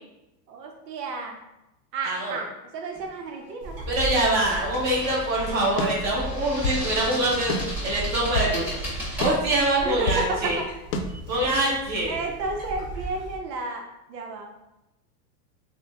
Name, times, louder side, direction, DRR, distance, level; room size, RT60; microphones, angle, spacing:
voice 1, 0.5-1.4 1.9-3.9 9.8-10.7 12.1-13.8 14.1-14.5, right 3 dB, 90° right, 2 dB, 0.7 m, -32 dB
voice 2, 2.0-2.4 3.9-10.6 11.3-12.1, right 1 dB, 35° right, -4 dB, 1.2 m, -25 dB
sound 1, 2.9-3.2 4.6-9.3, left 1 dB, 5° right, 0.4 m, -36 dB
sound 2, 3.6-13.4, right 2 dB, 50° right, 1.4 m, -36 dB
sound 3, 5.8-6.9 7.5-8.6 9.2-10.3 10.9-11.0, left 2 dB, 80° left, 0.7 m, -29 dB
3.6 x 2.2 x 3.4 m, 0.95 s
supercardioid pair, 145°, 48 cm